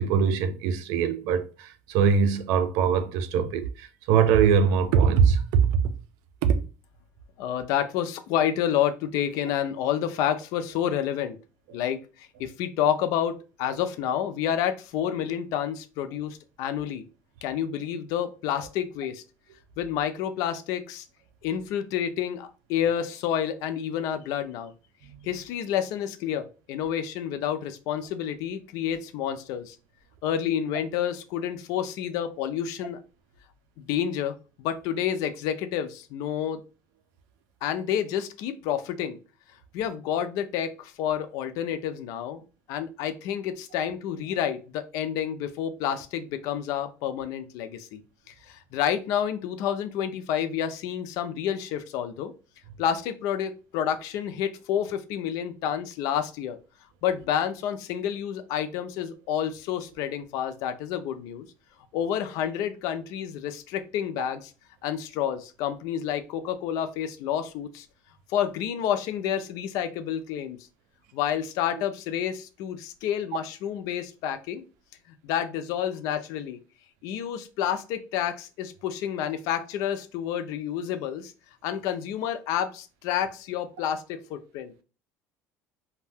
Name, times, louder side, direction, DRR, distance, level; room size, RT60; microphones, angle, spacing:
voice 1, 0.0-5.7 6.4-6.6 25.0-25.3, right 6 dB, 75° right, 0.4 m, -22 dB
voice 2, 7.4-11.4 11.7-17.0 17.4-19.2 19.8-21.1 21.4-24.7 25.2-29.8 30.2-33.0 33.8-36.6 37.6-39.2 39.7-42.4 42.7-48.0 48.3-52.3 52.8-56.6 57.0-61.5 61.9-64.5 64.8-67.9 68.3-70.6 71.1-74.6 75.2-76.6 77.0-81.3 81.6-84.8, left 9 dB, 70° left, 0.4 m, -29 dB
2.7 x 2.2 x 3.4 m
cardioid pair, 140°, 6 cm